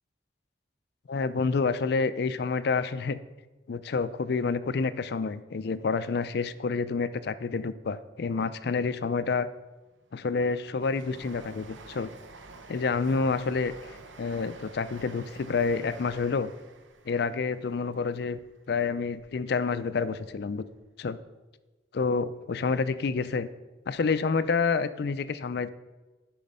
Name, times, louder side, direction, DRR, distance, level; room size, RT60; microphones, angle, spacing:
voice 1, 1.1-3.2 3.7-9.5 10.1-12.1 12.7-13.7 14.2-16.5 17.1-18.4 18.7-20.6 21.0-21.2 21.9-23.5 23.9-25.7, left 4 dB, 55° left, 14 dB, 0.4 m, -28 dB
Train, 9.4-19.6 20.0-20.9 21.2-21.3, right 3 dB, 85° right, 0.8 m, -50 dB
10.5 x 5.1 x 5.4 m, 1.2 s
head